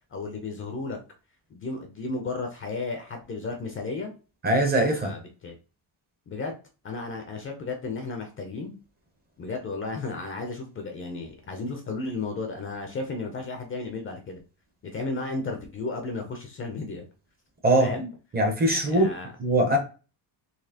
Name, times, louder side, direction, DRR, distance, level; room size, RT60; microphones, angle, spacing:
voice 1, 0.1-1.0 1.5-4.1 5.0-5.6 6.3-6.5 6.8-8.7 9.4-14.4 14.8-17.1 17.8-18.1 18.9-19.3, left 3 dB, 30° left, 4 dB, 0.4 m, -33 dB
voice 2, 4.4-5.1 17.6-17.9 18.3-19.1 19.4-19.8, right 1 dB, 20° right, 4 dB, 0.5 m, -21 dB
4.1 x 2.7 x 2.7 m, 0.34 s
cardioid pair, 180°, 46 cm